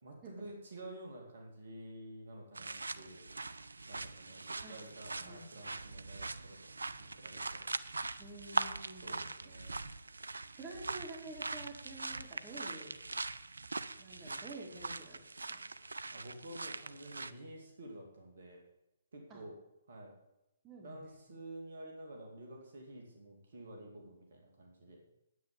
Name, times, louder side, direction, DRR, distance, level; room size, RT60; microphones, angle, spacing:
voice 1, 0.0-3.2 3.9-6.6 7.0-7.6 8.9-9.9 16.1-18.6 19.1-19.5 19.9-20.1 20.8-25.0, right 1 dB, 55° right, 1 dB, 2.7 m, -50 dB
sound 1, 2.5-17.3, right 3 dB, 75° right, 0.5 m, -42 dB
voice 2, 8.2-9.2 10.5-12.9 14.0-15.2 15.5-15.6 19.3-19.4 20.6-21.0, right 2 dB, 20° right, -1 dB, 3.2 m, -49 dB
9.4 x 8.9 x 7.1 m, 0.88 s
figure-of-eight pair, 125°, 0 cm